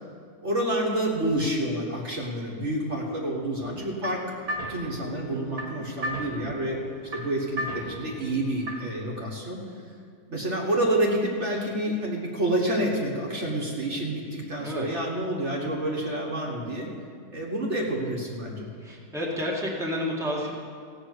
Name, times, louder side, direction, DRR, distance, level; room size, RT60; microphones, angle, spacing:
voice 1, 0.4-4.2 4.7-9.6 10.3-16.9 17.3-18.7, right 1 dB, 45° right, -2 dB, 1.8 m, -28 dB
sound 1, 3.6-9.0, equal, 75° right, 2.2 m, -37 dB
voice 2, 18.8-20.5, left 1 dB, ahead, -4 dB, 1.8 m, -30 dB
16.0 x 6.2 x 7.9 m, 2.2 s
omnidirectional pair, 1.7 m